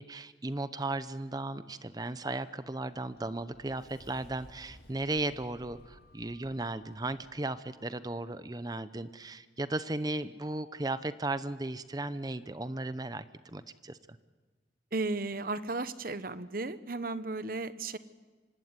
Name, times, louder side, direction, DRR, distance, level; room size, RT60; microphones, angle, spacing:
voice 1, 0.0-14.0, right 2 dB, 20° right, 13 dB, 0.7 m, -36 dB
Sliding door, 2.8-7.3, equal, 60° left, 7.3 m, -57 dB
voice 2, 14.9-18.0, right 3 dB, 50° right, 13 dB, 1.0 m, -34 dB
25.5 x 17.0 x 9.6 m, 1.4 s
head